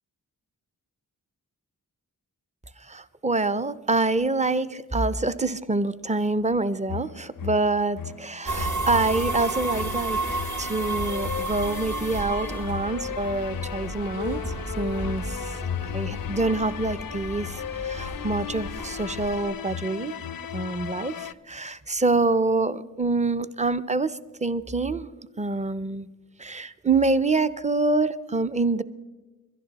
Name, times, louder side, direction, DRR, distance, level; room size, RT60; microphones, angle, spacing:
voice 1, 2.8-15.6 15.9-20.2 20.5-25.1 25.4-26.1 26.4-28.8, right 3 dB, 20° right, 13 dB, 0.5 m, -26 dB
sound 1, 6.9-21.3, left 10 dB, 65° left, 0.5 m, -35 dB
sound 2, 8.4-19.5, right 3 dB, 55° right, 1.2 m, -33 dB
22.0 x 11.0 x 4.0 m, 1.2 s
cardioid pair, 45°, 36 cm